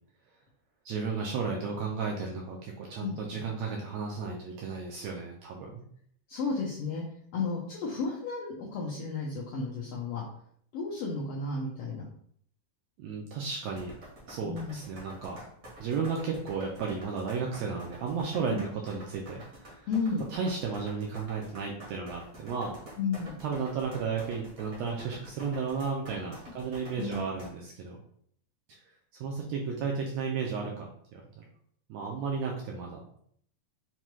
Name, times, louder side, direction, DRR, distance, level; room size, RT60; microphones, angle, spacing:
voice 1, 0.8-5.9 13.0-13.9 14.3-15.4 15.8-19.9 20.3-22.8 23.4-28.0 29.2-31.4 31.9-33.0, right 5 dB, 80° right, -1 dB, 1.5 m, -34 dB
voice 2, 6.3-7.0 7.3-10.2 10.7-12.1 14.4-14.8 18.5-18.6 19.9-20.2 23.0-23.3 27.0-27.3, left 4 dB, 85° left, -3 dB, 1.4 m, -33 dB
sound 1, 13.7-27.5, right 1 dB, 55° right, 0.9 m, -48 dB
5.6 x 2.2 x 3.0 m, 0.63 s
omnidirectional pair, 3.5 m